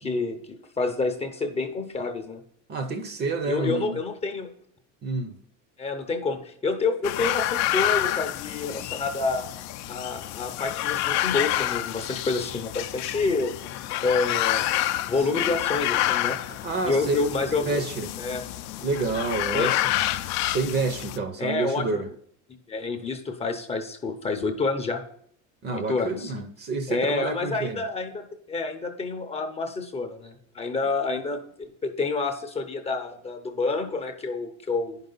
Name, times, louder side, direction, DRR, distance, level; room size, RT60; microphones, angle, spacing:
voice 1, 0.0-2.4 3.4-4.5 5.8-9.5 9.9-13.5 14.0-14.7 15.1-16.4 16.9-17.8 18.2-18.4 19.5-19.7 21.4-22.0 22.7-25.0 25.7-26.3 26.9-31.4 31.8-35.0, left 3 dB, 20° left, 0.7 m, -28 dB
voice 2, 2.7-4.0 5.0-5.4 16.5-17.2 17.5-18.1 18.8-19.9 20.5-22.1 25.6-27.8, right 3 dB, 30° right, 0.7 m, -29 dB
sound 1, 7.0-21.2, left 14 dB, 55° left, 0.5 m, -28 dB
9.9 x 5.5 x 3.9 m
cardioid pair, 145°, 34 cm